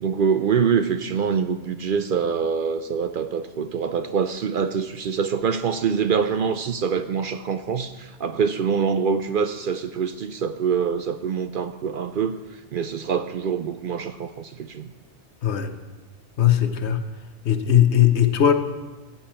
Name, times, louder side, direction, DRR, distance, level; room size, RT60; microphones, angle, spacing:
voice 1, 0.0-14.9, right 6 dB, 60° right, 10 dB, 0.6 m, -25 dB
voice 2, 16.4-17.0 17.4-18.5, left 10 dB, 75° left, 8 dB, 1.1 m, -18 dB
15.0 x 9.0 x 4.3 m, 1.2 s
omnidirectional pair, 1.2 m